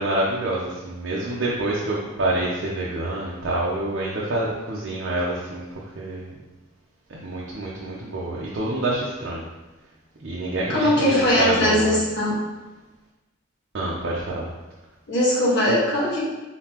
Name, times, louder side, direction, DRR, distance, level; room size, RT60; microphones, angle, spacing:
voice 1, 0.0-6.3 7.1-9.5 10.2-12.0 13.7-14.5, right 2 dB, 60° right, -5 dB, 0.7 m, -27 dB
voice 2, 10.7-12.4 15.1-16.2, left 1 dB, 60° left, -6 dB, 1.5 m, -20 dB
4.0 x 3.9 x 2.9 m, 1.1 s
head